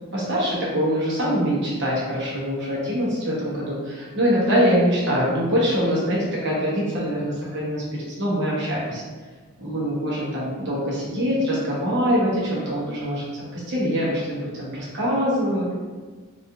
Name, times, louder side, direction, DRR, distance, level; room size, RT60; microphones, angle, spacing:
voice 1, 0.1-9.0 9.6-13.3 13.5-15.7, equal, 55° right, -6 dB, 1.0 m, -24 dB
4.1 x 2.5 x 2.8 m, 1.4 s
head